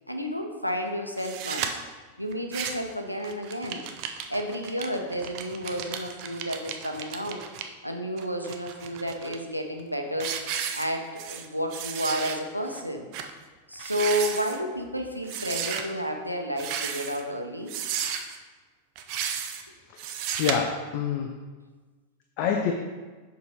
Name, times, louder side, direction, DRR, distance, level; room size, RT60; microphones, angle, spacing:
voice 1, 0.1-1.8 2.2-3.8 4.3-7.4 7.8-10.3 10.7-13.1 13.7-17.7, equal, 90° left, 4 dB, 0.8 m, -31 dB
sound 1, 1.2-1.7 2.3-2.9 3.2-7.6 8.2-9.4 9.8-9.9 10.2-11.5 11.7-12.4 12.7-12.8 13.1-13.3 13.7-14.6 15.3-15.8 16.5-17.2 17.7-18.4 19.0-19.6 20.0-20.5, right 8 dB, 45° right, 0.6 m, -33 dB
voice 2, 19.9-21.3 22.4-22.7, left 7 dB, 45° left, 3 dB, 0.6 m, -27 dB
6.9 x 5.1 x 4.3 m, 1.4 s
figure-of-eight pair, 90°, 0 cm